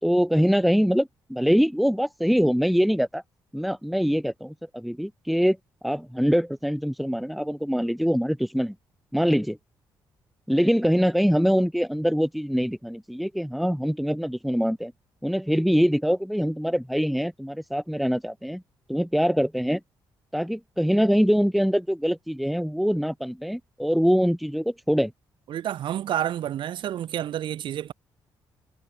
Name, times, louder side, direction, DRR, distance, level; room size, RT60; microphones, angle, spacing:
voice 1, 0.0-3.2 3.5-5.6 5.8-8.7 9.1-9.6 10.5-14.9 15.2-18.6 18.9-19.8 20.3-25.1, equal, ahead, 2.7 m, -23 dB
voice 2, 25.5-27.9, right 11 dB, 70° right, 4.0 m, -29 dB
cardioid pair, 100°, 8 cm